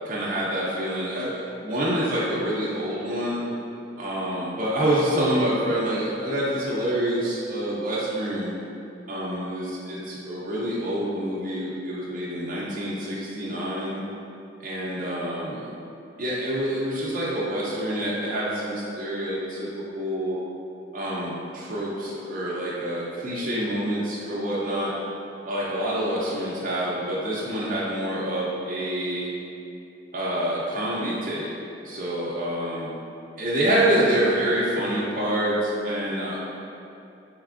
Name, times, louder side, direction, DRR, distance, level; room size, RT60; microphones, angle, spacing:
voice 1, 0.0-3.4 4.0-8.6 9.1-14.0 14.6-15.7 16.2-19.7 19.9-20.4 20.9-24.9 25.4-29.3 30.1-31.5 31.8-32.9 33.3-36.4, right 1 dB, 45° right, -7 dB, 0.4 m, -27 dB
3.2 x 2.9 x 2.4 m, 2.7 s
head